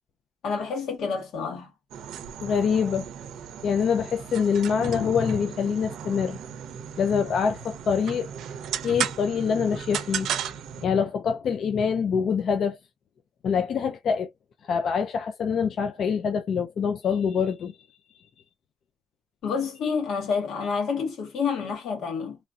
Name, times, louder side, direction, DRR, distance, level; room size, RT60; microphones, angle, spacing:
voice 1, 0.4-1.7 19.4-22.4, left 5 dB, 90° left, 1.4 m, -28 dB
sound 1, 1.9-10.9, right 9 dB, 90° right, 0.5 m, -35 dB
voice 2, 2.4-3.1 3.6-6.4 7.0-8.3 8.8-10.3 10.8-12.8 13.4-14.3 14.7-18.2, left 6 dB, 50° left, 0.4 m, -25 dB
3.0 x 2.5 x 2.3 m
cardioid pair, 170°, 0 cm